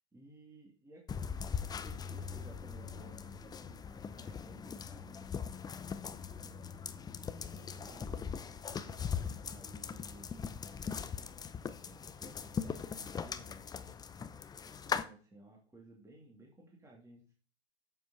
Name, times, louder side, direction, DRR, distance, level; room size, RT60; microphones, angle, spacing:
voice 1, 0.1-7.2 7.5-11.1 11.8-14.0 14.8-17.3, right 1 dB, 10° right, -1 dB, 2.5 m, -58 dB
sound 1, 1.1-15.0, left 6 dB, 10° left, 0.6 m, -40 dB
9.1 x 7.9 x 4.2 m, 0.39 s
hypercardioid pair, 105°, 32 cm